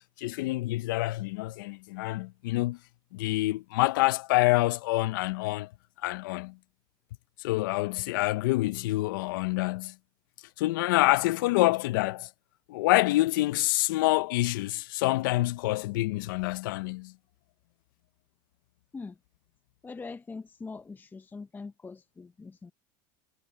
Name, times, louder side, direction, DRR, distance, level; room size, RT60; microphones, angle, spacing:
voice 1, 0.2-2.8 3.1-5.7 6.0-6.6 7.4-9.9 10.6-12.3 12.7-17.1, left 19 dB, 85° left, 0.6 m, -27 dB
voice 2, 19.8-22.7, left 4 dB, 15° left, 0.7 m, -42 dB
supercardioid pair, 100°, 11 cm